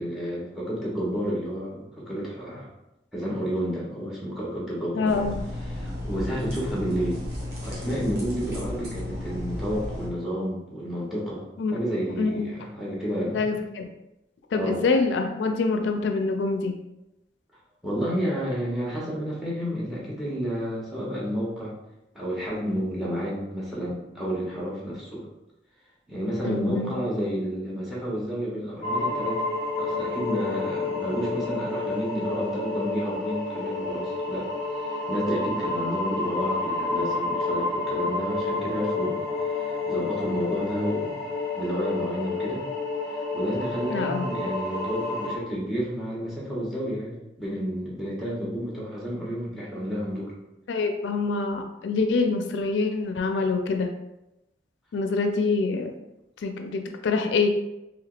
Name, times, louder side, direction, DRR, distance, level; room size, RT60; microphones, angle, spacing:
voice 1, 0.0-2.7 3.1-5.2 5.6-7.2 7.6-13.5 14.5-14.9 17.8-21.7 22.1-25.3 26.1-29.4 29.7-41.2 41.5-42.6 43.3-50.3, equal, ahead, -6 dB, 0.9 m, -31 dB
voice 2, 5.0-5.4 11.6-11.8 12.2-12.5 13.3-13.9 14.5-16.8 26.4-26.9 43.9-44.2 50.7-53.9 54.9-55.9 56.4-57.5, left 4 dB, 85° left, 5 dB, 0.4 m, -25 dB
sound 1, 5.1-10.1, left 1 dB, 60° right, 1.0 m, -34 dB
sound 2, 28.8-45.4, left 3 dB, 25° left, 1.0 m, -29 dB
3.3 x 2.9 x 2.4 m, 0.91 s
head